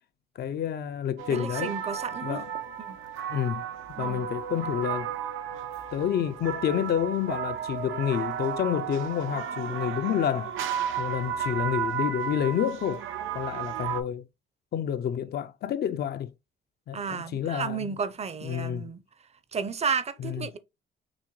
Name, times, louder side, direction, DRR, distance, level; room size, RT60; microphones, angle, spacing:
voice 1, 0.4-1.7 2.2-2.5 3.3-3.6 4.0-5.1 5.9-10.6 11.0-13.0 13.3-14.3 14.7-16.3 16.9-18.0 18.4-18.9 20.2-20.5, left 9 dB, 55° left, 0.4 m, -29 dB
sound 1, 1.2-14.0, right 8 dB, 80° right, 0.6 m, -33 dB
voice 2, 1.3-2.4 2.8-3.0 4.0-4.3 16.9-19.0 19.5-20.6, right 6 dB, 35° right, 0.6 m, -32 dB
6.1 x 2.1 x 3.0 m
cardioid pair, 90°, 20 cm